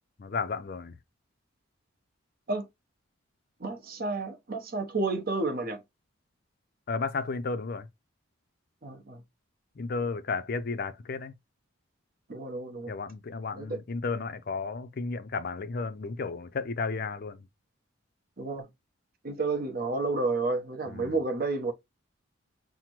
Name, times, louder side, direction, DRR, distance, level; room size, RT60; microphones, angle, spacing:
voice 1, 0.2-1.0 6.9-7.9 9.8-11.3 12.9-17.5 20.9-21.2, left 4 dB, 45° left, 0.5 m, -33 dB
voice 2, 3.6-5.8 8.8-9.2 12.3-12.9 13.5-13.8 18.4-18.7 19.2-21.7, right 3 dB, 45° right, 0.8 m, -31 dB
5.8 x 2.1 x 2.9 m
head